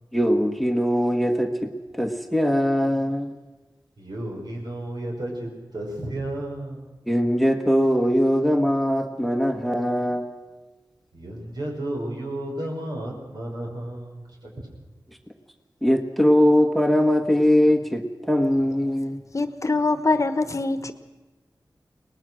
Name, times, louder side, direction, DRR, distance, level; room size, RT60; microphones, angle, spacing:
voice 1, 0.1-3.3 7.1-10.3 15.8-19.2, equal, ahead, 6 dB, 1.3 m, -21 dB
voice 2, 4.0-6.8 11.1-14.7, right 1 dB, 65° right, -1 dB, 5.6 m, -33 dB
voice 3, 19.3-20.9, left 3 dB, 45° left, 11 dB, 1.2 m, -23 dB
22.5 x 19.5 x 6.3 m, 1.2 s
wide cardioid pair, 85°, 7 cm